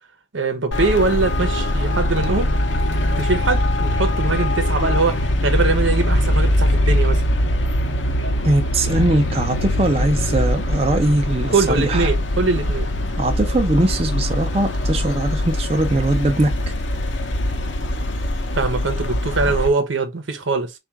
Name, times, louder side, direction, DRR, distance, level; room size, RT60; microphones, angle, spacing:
voice 1, 0.3-2.5 3.2-7.2 11.5-12.9 18.6-20.7, right 3 dB, 90° right, 0.9 m, -22 dB
Traffic noise roadway noise, 0.7-19.7, left 1 dB, 80° left, 0.8 m, -22 dB
voice 2, 8.4-12.1 13.2-16.7 19.4-19.5, right 1 dB, 30° right, 0.5 m, -21 dB
3.6 x 2.4 x 4.5 m
head